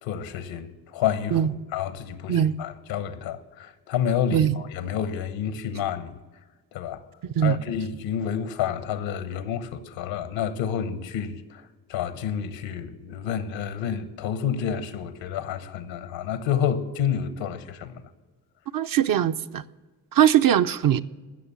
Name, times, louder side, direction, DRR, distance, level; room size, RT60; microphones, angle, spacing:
voice 1, 0.0-1.4 1.7-6.1 6.7-7.0 7.4-11.6 11.9-18.0, left 8 dB, 75° left, 1.1 m, -29 dB
voice 2, 18.7-19.6 20.1-21.0, right 10 dB, 50° right, 0.6 m, -21 dB
16.0 x 6.7 x 7.1 m
supercardioid pair, 55°, 46 cm